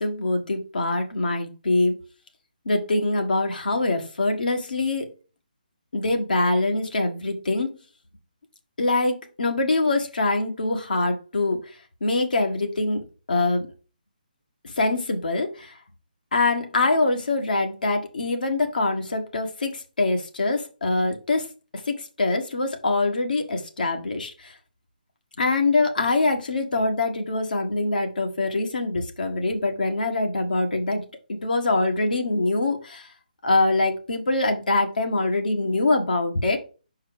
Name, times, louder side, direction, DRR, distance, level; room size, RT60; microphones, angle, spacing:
voice 1, 0.0-1.9 2.6-5.1 5.9-7.7 8.8-11.6 12.0-13.7 14.8-15.7 16.3-21.4 21.9-24.5 25.4-31.0 31.3-33.1 33.4-36.6, left 2 dB, 75° left, 3 dB, 1.7 m, -24 dB
5.7 x 4.7 x 4.9 m, 0.35 s
figure-of-eight pair, 150°, 5 cm